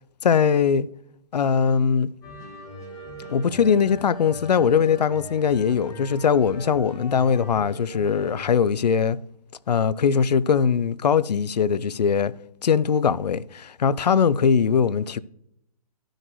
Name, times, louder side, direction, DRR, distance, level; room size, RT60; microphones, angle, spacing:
voice 1, 0.2-0.9 1.3-2.1 3.3-9.2 9.7-12.3 12.6-15.2, left 6 dB, 85° left, 0.5 m, -21 dB
sound 1, 2.2-8.4, left 1 dB, 15° left, 1.8 m, -40 dB
12.0 x 6.3 x 3.1 m
hypercardioid pair, 135°, 21 cm